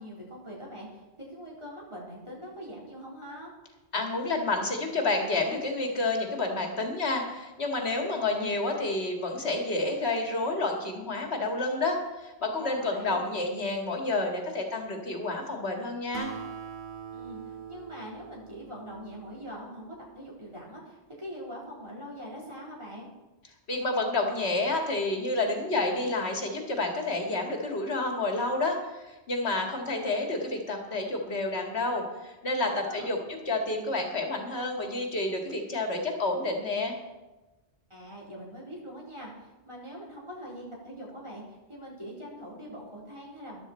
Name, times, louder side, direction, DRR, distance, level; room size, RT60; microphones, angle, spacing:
voice 1, 0.0-3.5 12.6-13.2 17.1-23.1 32.6-33.1 37.9-43.6, equal, 25° right, -5 dB, 4.0 m, -43 dB
voice 2, 3.9-16.3 23.7-33.2 33.5-36.9, left 2 dB, 75° left, 2 dB, 2.1 m, -29 dB
Acoustic guitar, 16.1-19.9, right 7 dB, 50° right, 1.4 m, -43 dB
14.0 x 12.0 x 4.3 m, 1.1 s
omnidirectional pair, 1.1 m